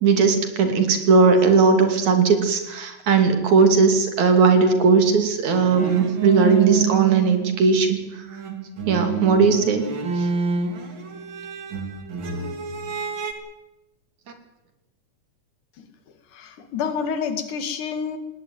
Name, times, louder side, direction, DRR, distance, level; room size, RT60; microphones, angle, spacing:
voice 1, 0.0-8.0 8.9-9.9 10.2-10.3, right 5 dB, 70° right, 7 dB, 4.2 m, -18 dB
sound 1, 5.5-8.0 8.3-13.3, right 6 dB, 45° right, 2.6 m, -28 dB
voice 2, 16.3-18.2, left 6 dB, 85° left, 10 dB, 3.4 m, -28 dB
20.0 x 17.5 x 9.6 m, 0.94 s
omnidirectional pair, 3.5 m